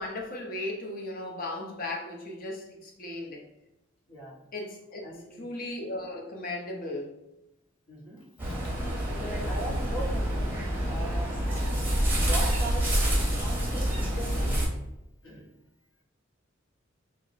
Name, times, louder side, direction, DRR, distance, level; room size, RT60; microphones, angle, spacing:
voice 1, 0.0-3.4 4.5-5.1 5.4-7.1 11.5-11.8, left 2 dB, 45° left, 0 dB, 0.6 m, -36 dB
voice 2, 5.0-5.4 7.9-8.5 9.0-10.6 10.9-11.3 12.2-12.8 13.4-14.6 15.2-15.5, right 1 dB, 70° left, -4 dB, 1.1 m, -39 dB
sound 1, 8.4-14.7, equal, 10° right, 0.7 m, -27 dB
2.4 x 2.1 x 3.9 m, 0.89 s
head